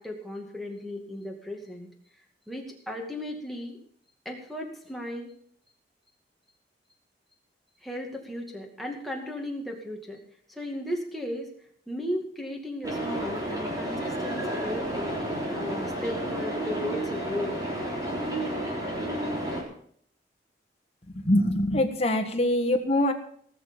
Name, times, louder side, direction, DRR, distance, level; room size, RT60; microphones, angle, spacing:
voice 1, 0.0-1.9 2.5-3.8 4.2-5.3 7.8-10.2 10.5-11.5 11.9-17.6, left 1 dB, ahead, 0 dB, 2.3 m, -36 dB
sound 1, 12.8-19.6, right 1 dB, 20° right, 3.5 m, -31 dB
voice 2, 21.2-23.1, left 1 dB, 35° left, 3 dB, 1.6 m, -23 dB
18.5 x 6.8 x 7.1 m, 0.62 s
head